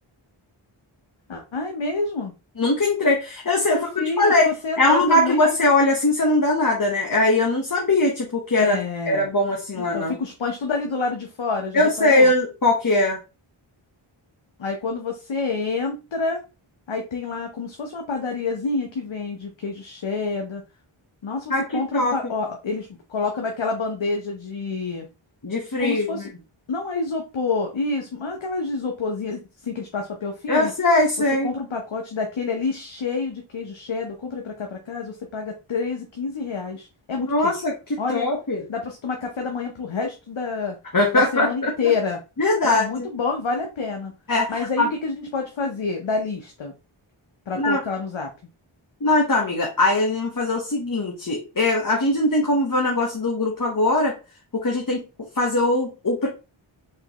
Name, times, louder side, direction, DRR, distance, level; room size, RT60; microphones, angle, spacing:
voice 1, 1.3-2.3 3.7-5.5 8.6-9.3 9.8-12.3 14.6-16.4 16.9-20.6 21.2-25.1 25.8-26.3 26.7-30.7 31.4-37.6 38.0-38.2 38.7-40.8 41.1-42.2 42.6-44.1 44.5-46.7 47.5-48.3, left 4 dB, 65° left, 3 dB, 0.8 m, -28 dB
voice 2, 2.6-4.5 4.8-8.8 9.1-10.1 11.7-13.2 21.5-22.1 25.4-26.3 30.5-31.5 37.2-38.6 40.9-41.9 42.4-43.1 44.3-44.9 47.6-47.8 49.0-54.1 54.6-55.0 55.3-56.3, left 2 dB, 40° left, 0 dB, 1.1 m, -21 dB
4.8 x 3.0 x 2.9 m, 0.30 s
wide cardioid pair, 40°, 50 cm